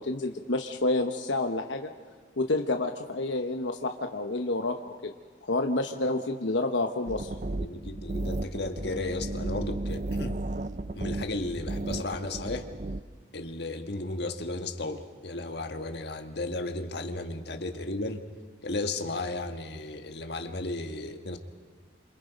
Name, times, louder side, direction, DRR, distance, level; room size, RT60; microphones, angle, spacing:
voice 1, 0.0-1.9 2.4-5.1 5.4-7.3, left 2 dB, 75° left, 5 dB, 1.1 m, -29 dB
sound 1, 7.1-13.0, right 2 dB, 40° right, 0.6 m, -34 dB
voice 2, 7.6-10.4 10.9-12.7 13.3-18.2 18.6-21.4, left 2 dB, 60° left, 5 dB, 1.7 m, -34 dB
28.5 x 27.0 x 5.2 m, 1.5 s
head